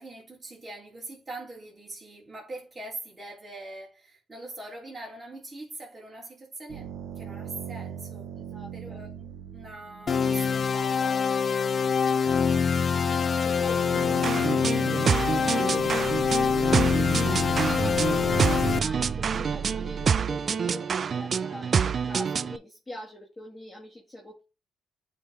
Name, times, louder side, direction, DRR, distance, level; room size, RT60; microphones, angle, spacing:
voice 1, 0.0-8.3 8.7-9.3 9.5-12.7, right 2 dB, 20° right, 2.8 m, -43 dB
sound 1, 6.7-10.8 13.5-20.2, right 7 dB, 75° right, 1.0 m, -38 dB
voice 2, 8.4-9.0 12.9-24.4, left 1 dB, 15° left, 2.0 m, -44 dB
sound 2, 10.1-18.8, left 6 dB, 40° left, 0.5 m, -25 dB
sound 3, 14.2-22.6, right 6 dB, 45° right, 0.4 m, -27 dB
9.0 x 3.6 x 3.4 m
cardioid pair, 90°, 0 cm